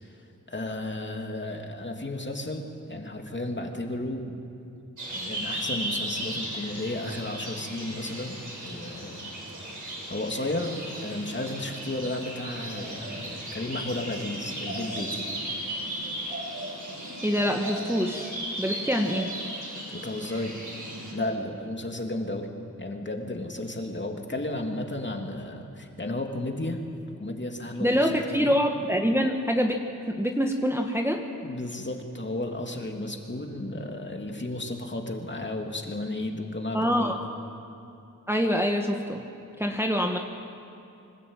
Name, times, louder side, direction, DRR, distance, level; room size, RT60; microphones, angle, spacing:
voice 1, 0.5-4.3 5.1-9.3 9.8-10.8 11.0-15.3 19.9-20.5 21.1-22.5 22.8-26.8 27.2-28.5 31.4-37.2, left 1 dB, 35° left, 2 dB, 2.9 m, -33 dB
sound 1, 5.0-21.1, right 1 dB, 60° right, 7.4 m, -36 dB
voice 2, 17.2-18.3 18.6-19.3 27.8-29.8 30.1-31.2 36.7-37.2 38.3-39.2 39.6-40.2, equal, 5° right, 2 dB, 1.6 m, -25 dB
26.0 x 12.5 x 9.0 m, 2.7 s
cardioid pair, 45°, 34 cm